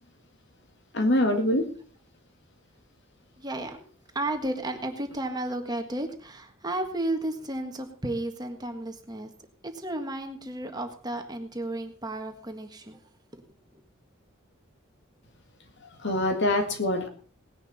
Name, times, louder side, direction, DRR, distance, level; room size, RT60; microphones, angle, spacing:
voice 1, 0.9-1.7 16.0-17.1, left 1 dB, 60° left, 5 dB, 2.1 m, -24 dB
voice 2, 3.4-3.8 4.1-9.3 9.6-13.0 13.3-13.4 13.7-13.8, right 1 dB, 20° right, 5 dB, 1.6 m, -33 dB
18.5 x 10.5 x 4.2 m, 0.42 s
head